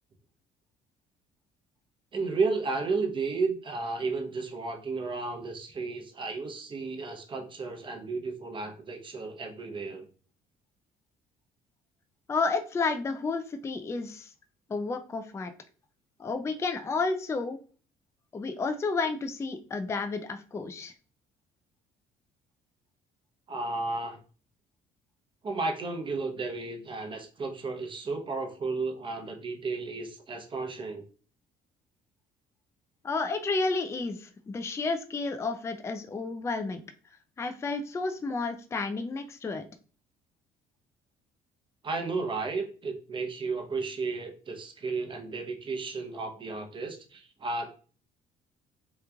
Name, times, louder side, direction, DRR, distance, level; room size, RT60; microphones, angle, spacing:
voice 1, 2.1-10.1 23.5-24.2 25.4-31.0 41.8-47.7, right 3 dB, 30° right, 3 dB, 0.8 m, -33 dB
voice 2, 12.3-14.3 14.7-15.5 16.2-17.6 18.3-20.9 33.0-36.8 37.4-39.7, left 3 dB, 15° left, 7 dB, 0.3 m, -31 dB
3.0 x 2.4 x 3.4 m, 0.40 s
cardioid pair, 110°, 17 cm